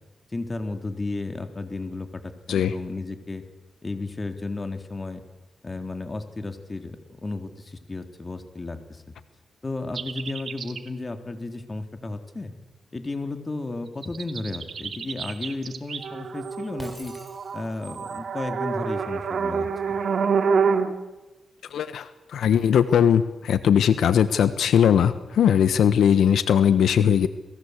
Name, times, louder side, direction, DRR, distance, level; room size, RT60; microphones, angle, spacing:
voice 1, 0.3-2.2 2.5-3.4 3.8-5.2 5.6-9.0 9.6-12.5 12.9-17.1 17.5-20.0, left 2 dB, 30° left, 7 dB, 3.7 m, -33 dB
sound 1, 9.9-10.9 14.0-20.9, right 5 dB, 65° right, 2.5 m, -27 dB
Shatter, 16.8-18.0, equal, ahead, 7.9 m, -45 dB
voice 2, 21.7-27.3, left 8 dB, 85° left, 12 dB, 1.2 m, -20 dB
29.5 x 21.0 x 8.3 m, 1.1 s
cardioid pair, 80°, 0 cm